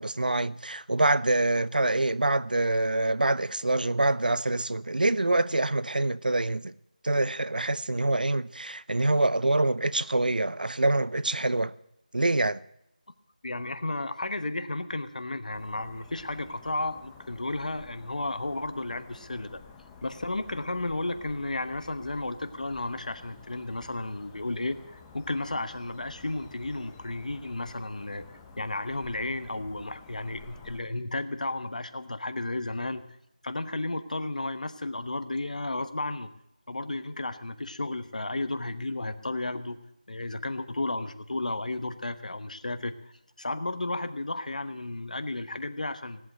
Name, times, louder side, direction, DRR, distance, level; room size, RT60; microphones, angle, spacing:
voice 1, 0.0-6.7 7.0-11.7 12.1-12.6, right 2 dB, 90° right, 0.7 m, -25 dB
voice 2, 13.4-19.6 20.0-28.2 28.6-33.0 33.4-36.3 36.7-39.8 40.1-43.1 43.4-46.2, left 2 dB, 60° left, 1.1 m, -33 dB
sound 1, 15.5-30.8, left 5 dB, 5° left, 0.6 m, -51 dB
17.5 x 8.2 x 9.0 m
figure-of-eight pair, 175°, 5 cm